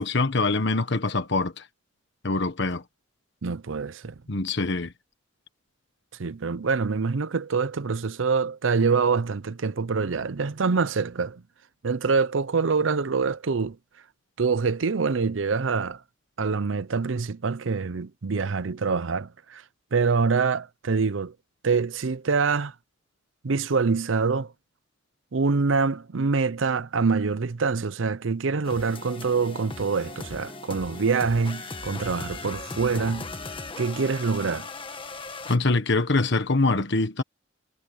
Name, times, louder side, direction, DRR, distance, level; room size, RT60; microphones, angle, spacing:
voice 1, 0.0-1.7 2.2-2.8 4.3-4.9 35.5-37.2, left 3 dB, 65° left, 1.3 m, -24 dB
voice 2, 3.4-4.1 6.2-11.4 11.8-13.8 14.4-16.0 16.4-19.6 19.9-21.3 21.6-22.7 23.4-24.5 25.3-33.3 33.8-34.7, right 4 dB, 80° right, 0.6 m, -25 dB
sound 1, 28.6-35.6, left 3 dB, 30° left, 1.7 m, -38 dB
head